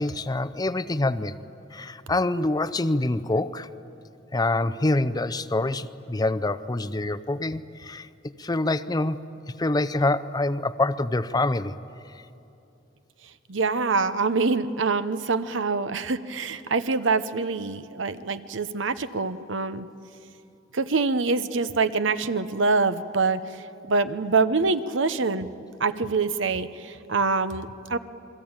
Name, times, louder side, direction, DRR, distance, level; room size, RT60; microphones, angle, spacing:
voice 1, 0.0-1.3 1.7-3.7 4.3-8.1 8.4-9.2 9.6-11.7, left 2 dB, 20° left, 15 dB, 0.6 m, -25 dB
voice 2, 13.5-19.9 20.7-25.5 25.8-28.0, right 4 dB, 75° right, 13 dB, 0.9 m, -25 dB
28.5 x 21.5 x 8.9 m, 2.8 s
head